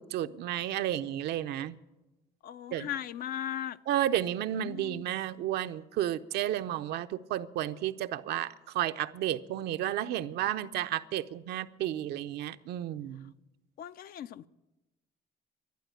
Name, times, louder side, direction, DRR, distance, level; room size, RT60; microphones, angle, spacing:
voice 1, 0.0-1.7 2.7-2.9 3.9-13.3, right 12 dB, 75° right, 0.6 m, -32 dB
voice 2, 2.4-3.8 4.6-5.0 13.8-14.5, left 10 dB, 60° left, 0.5 m, -38 dB
11.5 x 11.5 x 9.1 m
cardioid pair, 110°, 17 cm